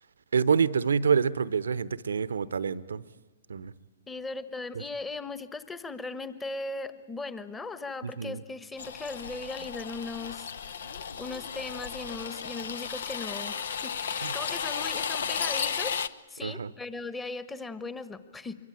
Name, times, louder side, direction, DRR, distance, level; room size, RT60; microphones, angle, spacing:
voice 1, 0.3-3.0 3.5-3.7 8.0-8.4 14.2-14.3 16.4-16.7, right 6 dB, 75° right, 18 dB, 0.9 m, -27 dB
voice 2, 4.1-10.5 10.9-16.0 16.3-18.6, left 3 dB, 10° left, 12 dB, 1.4 m, -38 dB
sound 1, 8.8-16.1, left 7 dB, 65° left, 0.9 m, -34 dB
24.5 x 23.0 x 8.9 m, 1.2 s
hypercardioid pair, 125°, 0 cm